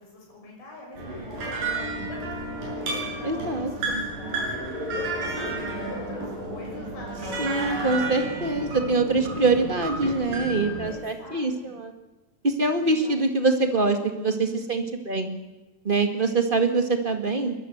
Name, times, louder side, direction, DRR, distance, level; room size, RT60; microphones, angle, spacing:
voice 1, 0.0-8.2 10.8-11.8 12.8-13.2, left 2 dB, 90° left, -1 dB, 7.9 m, -43 dB
sound 1, 1.0-10.9, right 2 dB, 65° right, 8.8 m, -31 dB
voice 2, 3.2-4.0 7.4-11.9 12.4-15.3 15.8-17.5, right 3 dB, 25° right, 6 dB, 1.2 m, -24 dB
22.5 x 21.0 x 8.1 m, 1.0 s
omnidirectional pair, 4.2 m